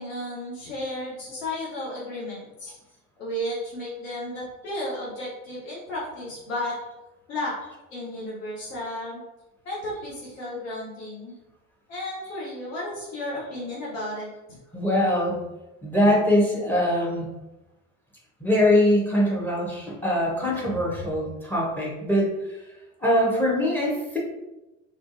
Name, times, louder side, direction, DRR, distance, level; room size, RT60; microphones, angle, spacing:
voice 1, 0.0-2.7 3.2-6.8 7.3-7.5 7.9-9.2 9.6-11.4 11.9-14.6, left 1 dB, 75° left, -6 dB, 0.8 m, -33 dB
voice 2, 14.7-15.4 15.8-17.3 18.4-22.7 23.0-24.2, left 1 dB, 5° left, -3 dB, 0.6 m, -23 dB
2.5 x 2.3 x 2.4 m, 1.0 s
figure-of-eight pair, 60°, 40 cm